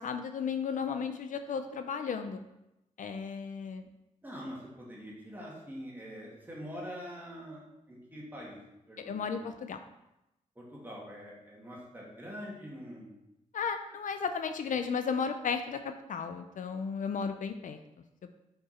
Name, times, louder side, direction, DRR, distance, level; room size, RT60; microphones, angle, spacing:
voice 1, 0.0-2.4 3.0-3.9 9.0-9.8 13.5-17.8, left 6 dB, 70° left, 8 dB, 0.5 m, -34 dB
voice 2, 4.2-8.6 8.9-9.5 10.6-13.2, equal, 15° right, -5 dB, 2.4 m, -44 dB
6.0 x 5.5 x 4.3 m, 0.89 s
cardioid pair, 95°, 14 cm